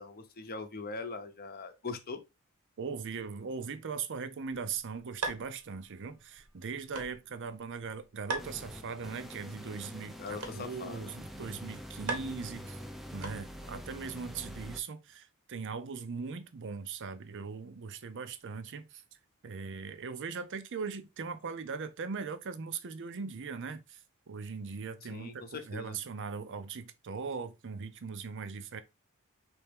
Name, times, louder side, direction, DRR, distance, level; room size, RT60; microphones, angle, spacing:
voice 1, 0.0-2.2 10.2-11.1 25.1-26.0, left 4 dB, 40° left, 0.8 m, -41 dB
voice 2, 2.8-12.8 13.1-19.0 19.4-24.0 24.3-28.8, right 5 dB, 55° right, 0.6 m, -40 dB
sound 1, 4.5-13.8, right 3 dB, 75° right, 1.2 m, -43 dB
sound 2, 8.4-14.8, equal, ahead, 0.4 m, -45 dB
4.4 x 3.4 x 3.5 m
head